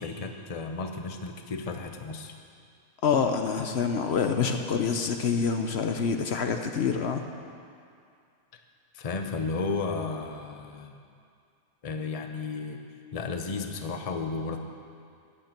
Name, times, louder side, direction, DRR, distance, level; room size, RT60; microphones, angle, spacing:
voice 1, 0.0-2.3 8.5-8.6 8.9-11.0 11.8-12.8 13.1-14.6, left 4 dB, 35° left, 5 dB, 0.8 m, -33 dB
voice 2, 3.0-7.2, left 6 dB, 65° left, 5 dB, 1.0 m, -26 dB
14.0 x 9.3 x 5.9 m, 2.4 s
omnidirectional pair, 1.2 m